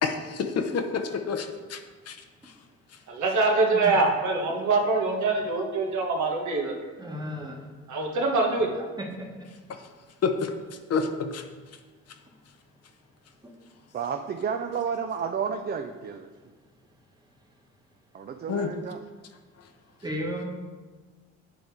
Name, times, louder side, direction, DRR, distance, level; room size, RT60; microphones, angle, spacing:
voice 1, 0.0-2.2 2.4-2.5 9.7-9.8 10.2-10.5 10.9-11.4 18.5-18.7, left 5 dB, 55° left, 7 dB, 0.7 m, -28 dB
voice 2, 3.1-6.7 7.9-8.8, right 3 dB, 70° right, 1 dB, 1.2 m, -24 dB
voice 3, 7.0-7.6 20.0-20.4, equal, 15° right, 0 dB, 1.3 m, -33 dB
voice 4, 13.9-16.3 18.1-19.0, right 6 dB, 35° right, 6 dB, 0.4 m, -31 dB
7.9 x 3.5 x 4.6 m, 1.3 s
cardioid pair, 90°, 30 cm